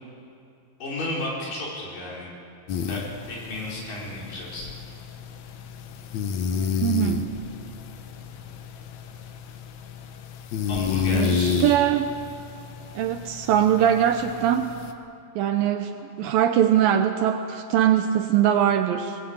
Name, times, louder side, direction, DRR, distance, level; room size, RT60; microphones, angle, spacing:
voice 1, 0.8-2.3 2.8-4.7 10.6-11.8, left 1 dB, 55° left, -4 dB, 5.6 m, -33 dB
sound 1, 2.7-14.9, left 6 dB, 75° left, 1.7 m, -31 dB
voice 2, 6.8-7.3 11.1-12.1 13.0-14.8 15.4-19.2, right 10 dB, 75° right, 7 dB, 2.3 m, -22 dB
20.5 x 20.0 x 8.6 m, 2.6 s
omnidirectional pair, 4.6 m